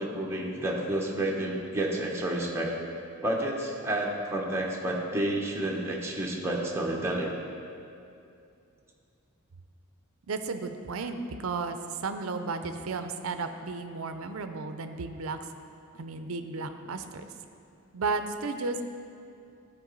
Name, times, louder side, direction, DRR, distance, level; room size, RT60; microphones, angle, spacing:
voice 1, 0.0-2.7 3.2-7.3, right 1 dB, 10° right, -2 dB, 1.0 m, -30 dB
voice 2, 10.3-15.4 15.9-17.2 17.9-18.8, right 4 dB, 70° right, 8 dB, 0.5 m, -33 dB
13.0 x 4.8 x 3.9 m, 2.5 s
head